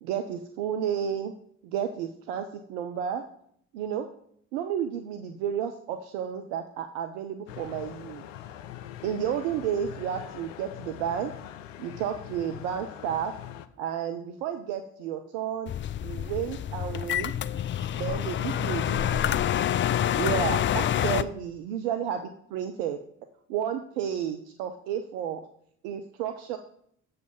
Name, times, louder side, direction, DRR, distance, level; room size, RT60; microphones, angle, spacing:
voice 1, 0.0-1.3 1.6-3.2 3.7-4.1 4.5-8.2 9.0-11.3 11.8-13.3 13.8-15.7 16.0-17.3 17.9-19.4 20.2-23.0 23.5-25.5 25.8-26.6, right 9 dB, 75° right, 7 dB, 0.7 m, -32 dB
sound 1, 7.5-13.7, left 11 dB, 85° left, 0.5 m, -43 dB
sound 2, 15.7-21.2, left 11 dB, 35° left, 0.4 m, -27 dB
7.5 x 5.6 x 5.2 m, 0.66 s
hypercardioid pair, 50°, 37 cm